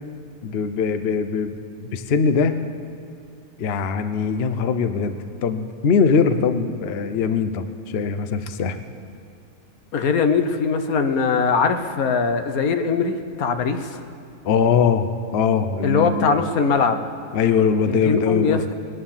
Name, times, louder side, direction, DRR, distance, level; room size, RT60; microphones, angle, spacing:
voice 1, 0.4-2.5 3.6-5.2 5.4-8.8 14.4-15.1 15.3-16.4 17.3-18.6, left 6 dB, 55° left, 9 dB, 0.8 m, -21 dB
voice 2, 9.9-14.0 15.8-17.0 17.9-18.7, left 5 dB, 75° left, 8 dB, 1.3 m, -21 dB
20.5 x 9.8 x 7.2 m, 2.6 s
omnidirectional pair, 1.5 m